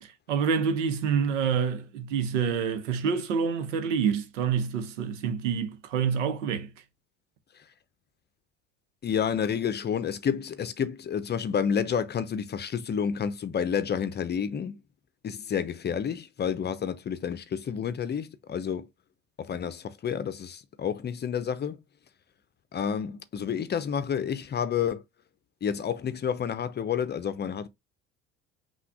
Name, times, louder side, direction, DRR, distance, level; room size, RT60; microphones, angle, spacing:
voice 1, 0.0-6.7, right 6 dB, 80° right, 1.0 m, -27 dB
voice 2, 9.0-14.8 15.2-18.9 19.4-21.8 22.7-25.0 25.6-27.7, left 7 dB, 30° left, 0.6 m, -30 dB
5.8 x 2.4 x 3.5 m
hypercardioid pair, 70°, 37 cm